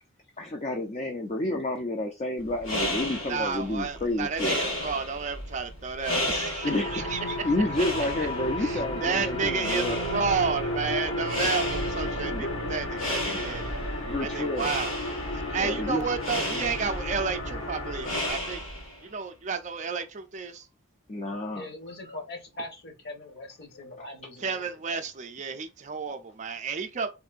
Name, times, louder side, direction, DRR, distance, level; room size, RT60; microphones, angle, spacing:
voice 1, 0.4-4.6 6.6-6.9 7.4-10.0 12.2-12.5 13.3-13.4 14.0-14.7 15.6-16.0 21.1-21.7, left 1 dB, 30° left, 0.4 m, -30 dB
sound 1, 2.4-19.1, left 1 dB, 70° left, 1.7 m, -34 dB
voice 2, 3.3-7.5 8.6-13.7 14.2-14.9 15.3-18.6 19.0-20.7 24.4-27.1, right 5 dB, 35° right, 0.4 m, -31 dB
sound 2, 6.6-18.3, left 1 dB, 90° left, 1.5 m, -33 dB
voice 3, 21.5-25.0, left 1 dB, 50° left, 1.0 m, -41 dB
3.7 x 2.6 x 2.4 m
head